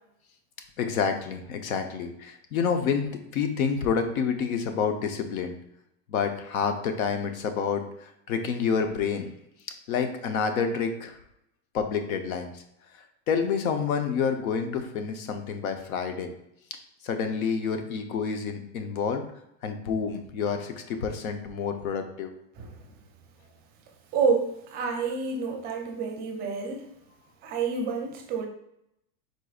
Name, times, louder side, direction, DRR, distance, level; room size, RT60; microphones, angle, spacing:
voice 1, 0.8-5.5 6.1-9.3 9.9-11.2 11.7-12.6 12.9-16.3 17.0-19.2 19.6-22.3, left 6 dB, 80° left, 7 dB, 0.8 m, -28 dB
voice 2, 22.6-22.9 24.1-26.9 27.4-28.5, right 5 dB, 25° right, 3 dB, 0.5 m, -29 dB
4.7 x 4.0 x 2.3 m, 0.78 s
supercardioid pair, 150°, 41 cm